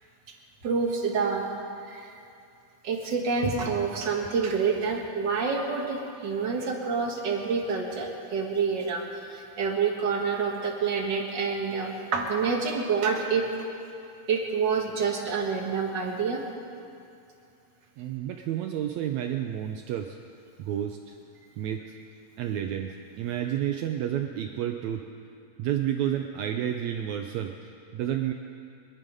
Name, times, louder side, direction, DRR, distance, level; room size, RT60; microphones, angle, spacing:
voice 1, 0.6-1.5 1.9-2.1 2.8-13.4 14.3-16.4, right 5 dB, 50° right, 0 dB, 1.4 m, -27 dB
voice 2, 18.0-20.2 20.6-21.2 21.6-22.0 22.4-25.1 25.6-28.3, right 10 dB, 90° right, 5 dB, 1.6 m, -30 dB
24.0 x 11.0 x 5.3 m, 2.5 s
omnidirectional pair, 4.0 m